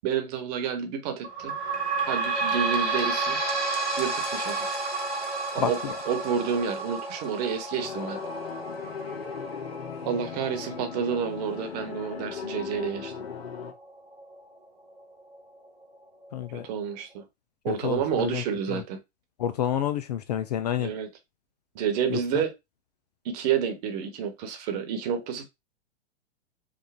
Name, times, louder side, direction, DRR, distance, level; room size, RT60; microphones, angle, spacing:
voice 1, 0.0-1.5 2.1-3.4 4.0-4.7 5.5-5.8 6.1-8.2 10.0-13.1 16.6-17.2 17.6-19.0 20.8-21.1 21.7-22.5 23.2-25.4, right 7 dB, 35° right, 1.2 m, -29 dB
sound 1, 1.2-14.4 15.0-15.1 15.3-15.4 16.2-16.3, right 3 dB, 85° right, 2.1 m, -32 dB
voice 2, 5.6-6.0 16.3-16.7 17.7-18.8 19.4-20.9 22.1-22.4, left 10 dB, 40° left, 0.4 m, -29 dB
sound 2, 7.8-13.7, left 6 dB, 60° left, 1.0 m, -38 dB
5.0 x 2.5 x 3.5 m
figure-of-eight pair, 105°, 34 cm